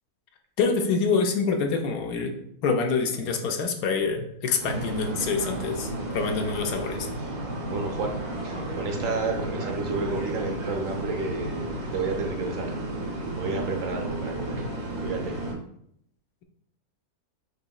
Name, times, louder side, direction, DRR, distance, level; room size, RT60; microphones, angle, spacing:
voice 1, 0.6-2.3 2.6-7.1, left 4 dB, 75° left, 4 dB, 1.1 m, -26 dB
sound 1, 4.6-15.5, right 1 dB, 80° right, 1.6 m, -33 dB
voice 2, 7.7-8.1 8.4-12.7 13.4-14.6 15.0-15.4, right 4 dB, 65° right, 2 dB, 1.0 m, -31 dB
6.6 x 3.0 x 2.3 m, 0.71 s
omnidirectional pair, 1.6 m